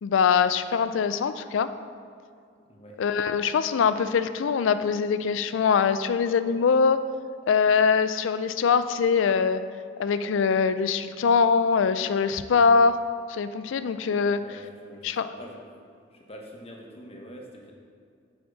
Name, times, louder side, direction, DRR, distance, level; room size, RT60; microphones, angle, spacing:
voice 1, 0.0-1.7 3.0-7.0 7.5-9.6 10.0-13.0 13.3-14.4 15.0-15.3, left 5 dB, 85° left, 12 dB, 0.4 m, -23 dB
voice 2, 14.3-15.6 16.1-17.7, equal, 30° left, 0 dB, 0.9 m, -45 dB
7.2 x 7.0 x 3.9 m, 2.3 s
head